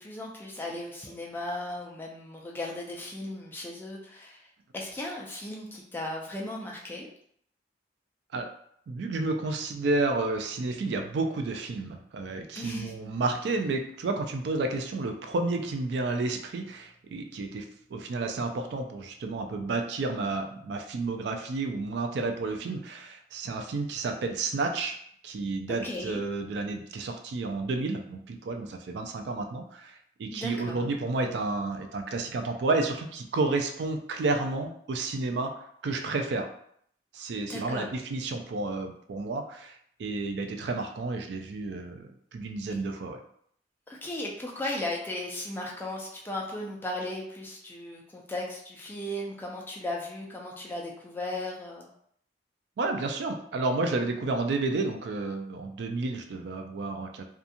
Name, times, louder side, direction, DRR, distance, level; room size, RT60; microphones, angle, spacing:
voice 1, 0.0-4.4 4.7-7.1 12.6-12.9 22.5-22.6 25.7-26.2 30.3-30.9 37.5-37.9 43.9-51.9, left 1 dB, 10° left, -2 dB, 0.4 m, -36 dB
voice 2, 8.9-17.6 17.9-25.0 25.2-35.5 35.8-36.5 37.1-42.0 42.3-43.2 52.8-57.3, right 3 dB, 65° right, 5 dB, 0.3 m, -31 dB
2.8 x 2.3 x 2.5 m, 0.67 s
head